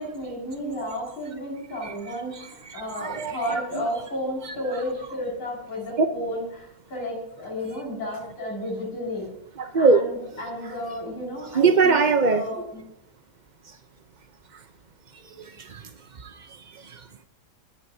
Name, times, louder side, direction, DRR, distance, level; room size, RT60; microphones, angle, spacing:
voice 1, 0.0-9.3 9.7-12.8, equal, 80° left, -3 dB, 6.6 m, -32 dB
voice 2, 2.3-3.9 4.4-4.5 6.0-6.1 9.6-10.0 11.5-12.4 13.7-13.8 15.3-17.1, right 4 dB, 65° right, 8 dB, 0.4 m, -23 dB
24.0 x 11.0 x 2.8 m, 0.82 s
omnidirectional pair, 2.0 m